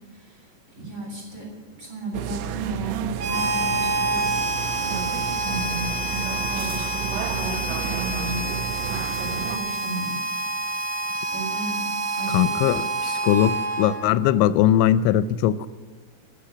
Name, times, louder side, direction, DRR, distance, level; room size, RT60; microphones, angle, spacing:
voice 1, 0.1-0.5 0.8-4.3 4.6-10.8 11.3-11.8 12.2-12.7, right 2 dB, 30° right, 4.0 m, -34 dB
sound 1, 2.1-9.6, right 9 dB, 85° right, 2.9 m, -32 dB
Harmonica, 3.2-14.2, right 2 dB, 65° right, 3.3 m, -28 dB
voice 2, 12.3-15.7, left 11 dB, 90° left, 2.9 m, -20 dB
15.0 x 7.3 x 9.5 m
omnidirectional pair, 5.2 m